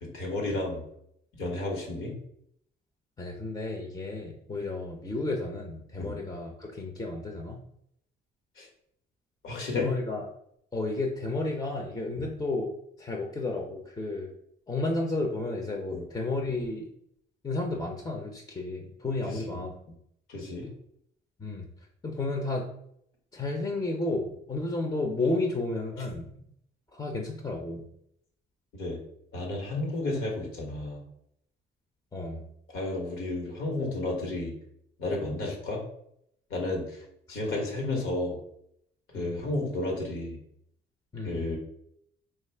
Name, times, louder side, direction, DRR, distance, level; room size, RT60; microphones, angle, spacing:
voice 1, 0.0-0.8 1.3-2.2 6.0-6.2 8.6-8.7 9.4-9.9 12.1-12.3 15.9-16.0 19.3-19.6 20.3-20.7 28.8-29.0 29.3-31.0 32.7-34.5 35.0-35.8 36.5-37.0 37.3-38.4 39.1-40.4 41.2-41.6, left 2 dB, 85° left, 0 dB, 1.2 m, -32 dB
voice 2, 3.2-7.6 9.7-10.3 10.7-14.3 14.7-16.9 17.4-20.0 21.4-21.7 22.0-22.7 23.3-26.3 26.9-27.8 32.1-32.5 39.1-39.5 41.1-41.4, left 2 dB, 20° left, 1 dB, 0.5 m, -32 dB
3.0 x 2.4 x 4.3 m, 0.73 s
cardioid pair, 90°, 20 cm